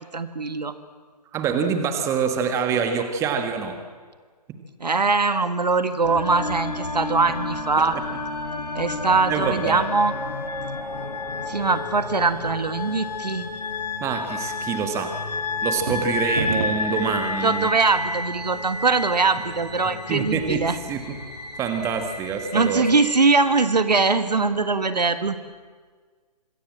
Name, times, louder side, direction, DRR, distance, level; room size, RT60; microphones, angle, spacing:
voice 1, 0.1-0.7 4.8-8.0 8.7-10.1 11.5-13.5 17.4-20.8 22.5-25.4, right 4 dB, 80° right, 11 dB, 1.7 m, -22 dB
voice 2, 1.3-3.8 7.8-7.9 9.3-9.8 14.0-15.2 15.6-17.7 20.1-21.2 21.6-22.9, right 6 dB, 15° right, 6 dB, 1.8 m, -26 dB
sound 1, 6.0-23.7, left 3 dB, 75° left, 3.6 m, -31 dB
Wind instrument woodwind instrument, 8.4-12.2, left 3 dB, 50° left, 4.6 m, -49 dB
sound 2, 15.6-17.0, right 5 dB, 55° right, 2.6 m, -29 dB
26.0 x 21.0 x 7.6 m, 1.5 s
figure-of-eight pair, 140°, 21 cm